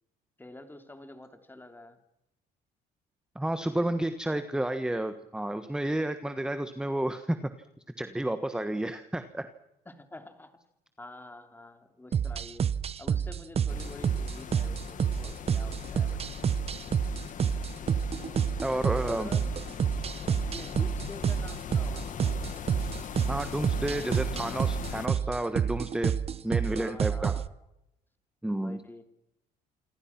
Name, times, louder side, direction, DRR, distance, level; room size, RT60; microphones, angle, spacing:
voice 1, 0.4-2.0 9.8-10.6 11.0-12.7 13.0-16.2 18.7-19.6 19.9-22.7 26.8-27.5 28.6-29.1, left 2 dB, 10° left, 7 dB, 3.2 m, -48 dB
voice 2, 3.3-7.4 8.0-9.5 18.6-19.3 23.3-26.2 26.4-27.4 28.4-28.8, right 1 dB, 5° right, 9 dB, 1.4 m, -31 dB
sound 1, 12.1-27.5, right 8 dB, 35° right, 0.9 m, -29 dB
sound 2, 13.7-25.1, left 8 dB, 50° left, 1.9 m, -40 dB
27.5 x 25.0 x 6.0 m, 0.88 s
cardioid pair, 110°, 17 cm